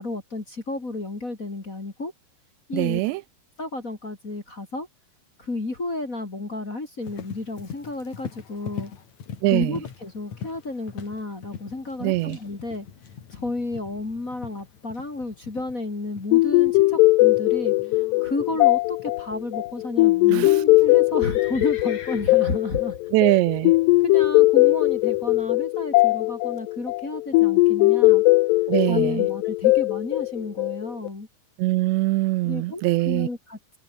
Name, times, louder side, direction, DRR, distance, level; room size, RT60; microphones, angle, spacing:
voice 1, 0.0-2.1 2.7-3.0 3.6-4.9 5.4-8.9 9.4-12.9 13.3-17.7 18.2-23.0 24.0-28.2 28.9-31.3 32.4-33.8, left 2 dB, 25° left, 2.4 m, -32 dB
voice 2, 2.7-3.2 9.4-9.7 12.0-12.4 20.3-20.5 23.1-23.7 28.7-29.3 31.6-33.3, right 19 dB, 90° right, 3.0 m, -22 dB
Livestock farm animals working animals, 7.0-25.5, left 7 dB, 45° left, 3.5 m, -43 dB
sound 1, 16.3-31.1, left 21 dB, 80° left, 2.6 m, -19 dB
open air
omnidirectional pair, 5.0 m